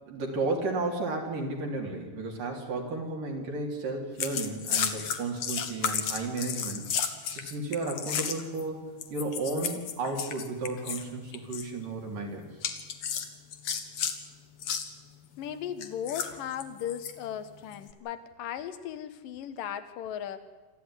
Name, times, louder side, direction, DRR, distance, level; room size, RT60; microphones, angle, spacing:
voice 1, 0.1-6.9 7.3-8.8 9.1-12.5, right 3 dB, 65° right, 1 dB, 4.8 m, -33 dB
sound 1, 4.2-8.6 9.0-11.1 11.3-11.7 12.6-14.2 14.6-14.9 15.8-17.1 17.7-17.9, left 7 dB, 55° left, 2.2 m, -33 dB
voice 2, 15.4-20.4, left 9 dB, 70° left, 11 dB, 2.8 m, -37 dB
27.5 x 14.0 x 9.8 m, 1.3 s
omnidirectional pair, 4.2 m